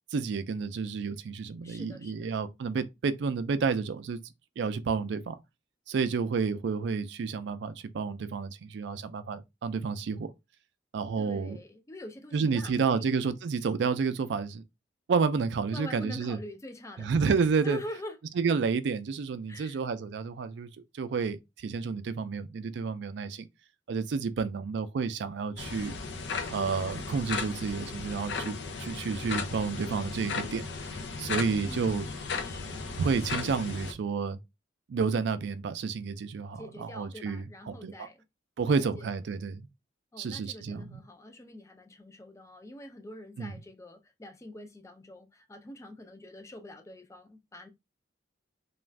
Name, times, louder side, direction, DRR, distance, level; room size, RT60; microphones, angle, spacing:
voice 1, 0.1-4.2 4.6-5.4 5.9-10.3 10.9-11.6 12.3-14.6 15.1-16.4 17.0-17.8 18.4-23.5 23.9-26.0 26.5-32.1 33.0-34.4 34.9-38.1 38.6-39.7 40.2-41.0 43.4-43.5, right 5 dB, 70° right, 0.4 m, -30 dB
voice 2, 1.6-2.4 11.2-13.2 15.7-18.2 19.5-19.8 31.6-32.8 36.5-38.2 38.8-39.1 40.1-47.7, left 1 dB, 15° left, 0.4 m, -45 dB
sound 1, 25.6-33.9, left 4 dB, 70° left, 0.5 m, -36 dB
2.5 x 2.3 x 3.2 m
head